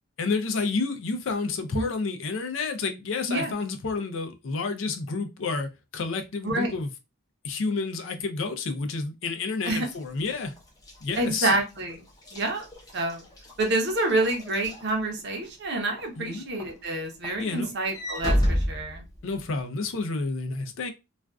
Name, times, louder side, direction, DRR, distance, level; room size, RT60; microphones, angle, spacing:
voice 1, 0.2-6.9 7.4-10.5 11.0-11.6 16.2-16.5 17.4-17.7 19.2-20.9, left 4 dB, 65° left, 0.4 m, -30 dB
Walk footsteps / Slam, 9.8-15.5 16.0-16.3 16.6-19.6, equal, 20° left, 0.6 m, -32 dB
voice 2, 11.2-12.0 12.3-12.6 12.9-13.2 13.6-19.0, right 2 dB, 50° right, 0.6 m, -27 dB
2.4 x 2.2 x 2.2 m
head